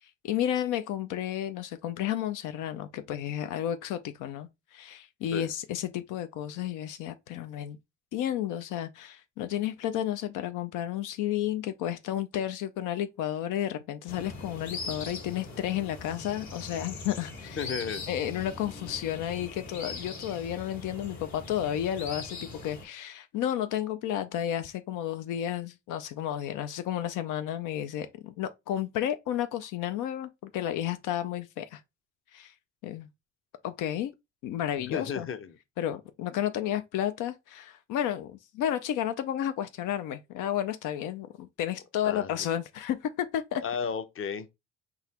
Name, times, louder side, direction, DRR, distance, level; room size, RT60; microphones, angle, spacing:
voice 1, 0.0-7.8 8.1-17.7 18.1-31.8 32.3-32.5 32.8-33.1 33.6-34.1 34.4-35.3 35.8-43.6, left 11 dB, 85° left, 0.5 m, -32 dB
sound 1, 14.1-22.8, left 3 dB, 65° left, 1.8 m, -41 dB
voice 2, 17.6-18.0 34.9-35.6 42.0-42.5 43.6-44.5, left 6 dB, 45° left, 0.8 m, -33 dB
4.0 x 2.8 x 4.2 m
cardioid pair, 90°, 30 cm